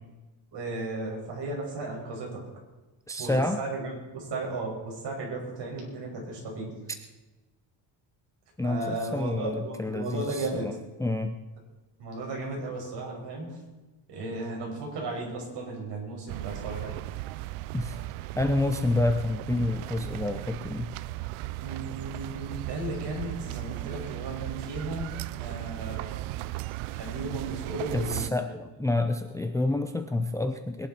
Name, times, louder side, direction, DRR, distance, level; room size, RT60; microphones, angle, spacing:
voice 1, 0.5-2.4 3.2-6.7 8.6-10.8 12.0-13.6 14.1-17.0 21.6-26.3 26.9-28.4, right 2 dB, 55° right, -1 dB, 6.2 m, -35 dB
voice 2, 3.1-3.6 8.6-10.7 11.0-11.4 17.7-18.0 18.3-20.9 27.9-30.9, left 2 dB, 5° left, 7 dB, 0.6 m, -28 dB
sound 1, 16.3-28.3, right 18 dB, 80° right, 0.6 m, -36 dB
21.5 x 11.5 x 4.4 m, 1.1 s
cardioid pair, 140°, 49 cm